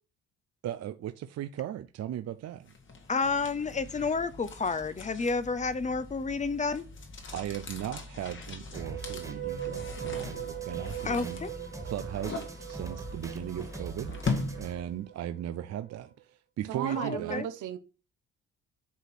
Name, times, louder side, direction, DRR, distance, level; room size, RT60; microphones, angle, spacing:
voice 1, 0.6-2.7 7.3-11.4 11.8-17.4, right 11 dB, 55° right, 0.5 m, -37 dB
sound 1, 2.7-15.0, left 3 dB, 40° left, 1.6 m, -40 dB
voice 2, 3.1-6.8 11.0-11.6 16.9-17.5, left 4 dB, 25° left, 0.7 m, -30 dB
sound 2, 8.6-15.9, right 12 dB, 35° right, 1.2 m, -41 dB
Drum kit, 8.7-14.7, right 3 dB, 10° right, 1.7 m, -44 dB
voice 3, 16.7-17.8, right 10 dB, 80° right, 1.1 m, -34 dB
8.4 x 3.0 x 5.9 m
cardioid pair, 90°, 30 cm